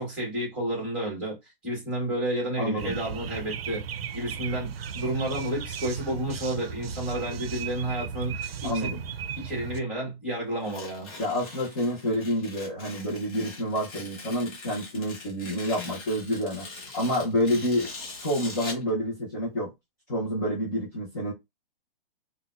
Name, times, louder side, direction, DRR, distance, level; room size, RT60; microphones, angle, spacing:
voice 1, 0.0-3.8 4.1-9.0 9.4-11.1, right 1 dB, 5° right, 1.5 m, -31 dB
voice 2, 2.6-2.9 8.6-9.0 11.2-16.7 16.9-17.9 18.2-19.7 20.1-21.3, equal, 20° left, 0.6 m, -28 dB
sound 1, 2.8-9.8, right 7 dB, 80° right, 0.5 m, -36 dB
Tearing, 10.6-18.9, left 3 dB, 35° left, 1.1 m, -42 dB
3.9 x 2.3 x 2.3 m
hypercardioid pair, 170°, 29 cm